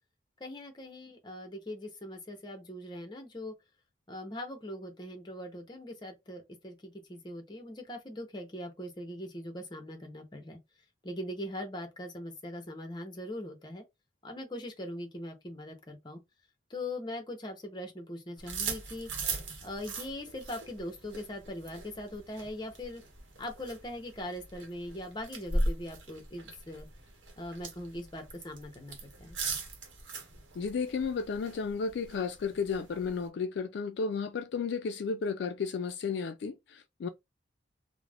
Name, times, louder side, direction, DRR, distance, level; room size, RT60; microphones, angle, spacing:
voice 1, 0.4-3.5 4.1-10.6 11.0-13.8 14.2-16.2 16.7-19.1 19.6-23.0 23.4-26.9 27.4-29.4, left 1 dB, 25° left, 0.6 m, -41 dB
sound 1, 18.4-33.3, right 2 dB, 85° right, 0.9 m, -39 dB
voice 2, 30.6-37.1, left 5 dB, 65° left, 0.3 m, -33 dB
2.4 x 2.0 x 3.2 m
head